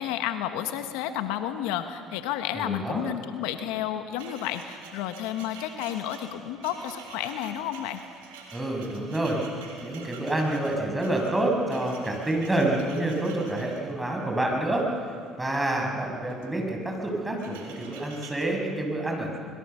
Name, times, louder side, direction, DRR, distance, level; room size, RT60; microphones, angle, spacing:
voice 1, 0.0-8.0, left 11 dB, 80° left, 9 dB, 1.3 m, -31 dB
sound 1, 0.6-0.7 0.9-1.8 2.0-2.3 3.4-15.7 16.2-16.6 16.9-18.5, right 4 dB, 90° right, 3.6 m, -48 dB
voice 2, 2.5-3.0 8.5-9.4 9.8-14.9 15.4-19.4, right 1 dB, 15° right, 1 dB, 6.8 m, -28 dB
25.5 x 22.0 x 7.0 m, 2.1 s
hypercardioid pair, 70°, 0 cm